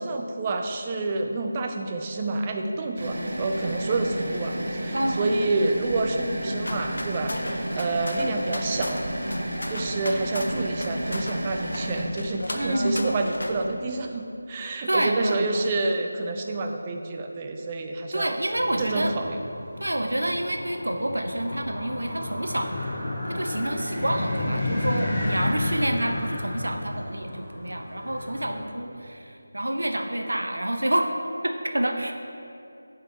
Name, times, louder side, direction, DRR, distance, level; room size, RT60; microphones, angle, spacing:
voice 1, 0.0-9.0 9.4-18.4 18.8-19.4, right 2 dB, 25° right, 3 dB, 0.4 m, -28 dB
sound 1, 3.0-12.0, right 1 dB, 55° right, 1.2 m, -32 dB
voice 2, 4.9-5.5 12.5-13.1 14.9-15.7 18.1-19.1 19.8-31.1 31.4-32.1, right 1 dB, 80° right, 4 dB, 0.7 m, -28 dB
sound 2, 6.6-13.6, left 1 dB, 75° left, 0.6 m, -35 dB
sound 3, 18.5-28.6, left 1 dB, 15° left, 1.2 m, -32 dB
9.9 x 3.8 x 4.1 m, 2.7 s
figure-of-eight pair, 165°, 0 cm